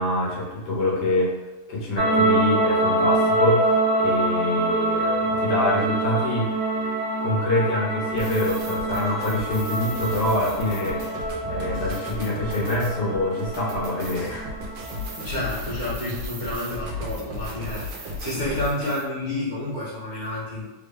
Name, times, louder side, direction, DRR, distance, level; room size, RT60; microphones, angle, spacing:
voice 1, 0.0-1.3 1.7-6.5 7.2-11.0 11.5-14.5, left 1 dB, 90° left, -4 dB, 1.5 m, -25 dB
sound 1, 2.0-15.2, right 2 dB, 35° right, 0.3 m, -25 dB
sound 2, 8.1-19.0, left 1 dB, 85° right, 1.2 m, -35 dB
voice 2, 15.2-20.7, left 1 dB, 45° left, -8 dB, 0.6 m, -30 dB
3.5 x 2.1 x 3.3 m, 1.1 s
omnidirectional pair, 1.7 m